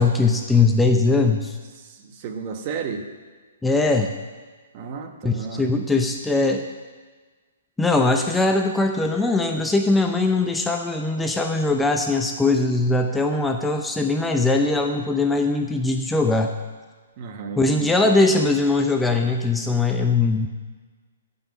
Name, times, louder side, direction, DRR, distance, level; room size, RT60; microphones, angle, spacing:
voice 1, 0.0-1.6 3.6-4.1 5.2-6.6 7.8-16.5 17.6-20.5, left 3 dB, 5° left, 3 dB, 0.7 m, -21 dB
voice 2, 1.8-3.0 4.7-5.6 17.2-18.0, right 5 dB, 40° right, 6 dB, 1.2 m, -33 dB
16.0 x 5.7 x 5.9 m, 1.4 s
hypercardioid pair, 130°, 0 cm